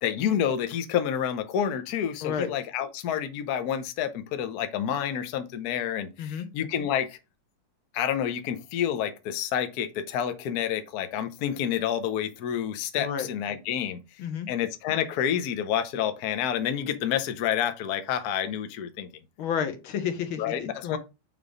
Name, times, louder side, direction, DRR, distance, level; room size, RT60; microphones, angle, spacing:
voice 1, 0.0-7.2 7.9-14.0 14.5-19.1 20.4-21.0, left 9 dB, 60° left, 1.1 m, -29 dB
voice 2, 13.0-13.3 14.2-14.5 19.4-21.0, left 8 dB, 85° left, 1.8 m, -31 dB
5.7 x 3.5 x 4.8 m
omnidirectional pair, 2.2 m